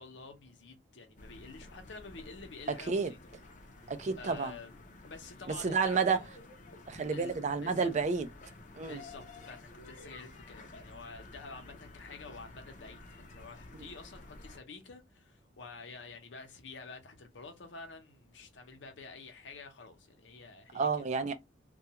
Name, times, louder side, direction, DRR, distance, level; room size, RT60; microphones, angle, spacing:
voice 1, 0.0-3.2 3.7-3.9 4.2-4.7 5.0-6.3 7.1-7.9 8.8-21.1, left 4 dB, 85° left, 0.7 m, -49 dB
sound 1, 1.2-14.6, left 2 dB, 45° left, 0.5 m, -52 dB
voice 2, 3.9-4.5 5.6-6.2 6.9-8.3 8.7-9.0 13.8-13.9 20.7-21.3, right 5 dB, 40° right, 0.4 m, -30 dB
2.3 x 2.2 x 2.8 m
head